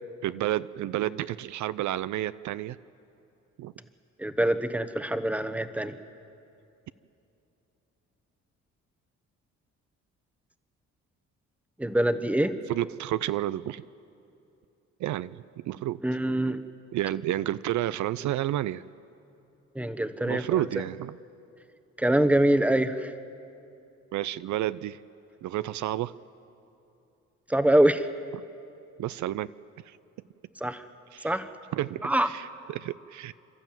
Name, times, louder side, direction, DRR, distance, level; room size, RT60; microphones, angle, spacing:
voice 1, 0.2-2.8 3.6-3.7 12.7-13.8 15.0-15.4 15.6-16.0 16.9-18.8 20.2-21.2 24.1-25.0 25.4-26.1 29.0-29.5 29.9-30.0 31.1-31.3 31.7-33.3, right 13 dB, 70° right, 16 dB, 0.5 m, -30 dB
voice 2, 4.2-6.0 11.8-12.6 16.0-16.6 19.7-20.6 22.0-23.1 27.5-28.1 30.6-30.8 31.2-31.5 32.0-32.3, right 1 dB, 5° right, 9 dB, 1.1 m, -24 dB
29.5 x 12.5 x 9.1 m, 2.8 s
cardioid pair, 90°, 30 cm